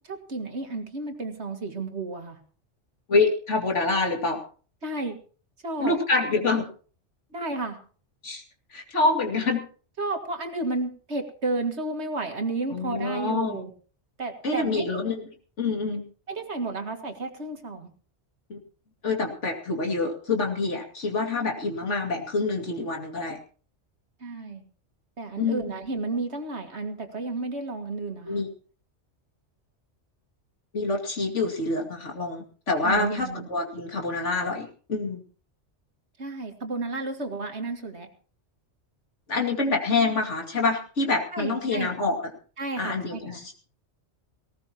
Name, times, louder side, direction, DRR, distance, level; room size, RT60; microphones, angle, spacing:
voice 1, 0.1-2.4 4.8-5.2 5.6-5.9 7.3-7.8 10.0-13.7 14.2-14.9 16.3-17.9 24.2-24.7 25.2-28.4 32.8-33.5 36.2-38.1 41.3-41.9 42.6-43.4, right 2 dB, 70° right, 5 dB, 2.3 m, -32 dB
voice 2, 3.1-4.4 5.8-6.7 8.2-8.4 8.7-9.6 12.7-13.6 14.4-15.2 15.6-16.0 18.5-18.6 19.0-23.4 25.4-25.7 28.3-28.5 30.7-35.2 39.3-42.2 42.8-43.5, left 3 dB, 85° left, 2 dB, 2.8 m, -26 dB
19.0 x 18.0 x 3.0 m, 0.41 s
omnidirectional pair, 1.2 m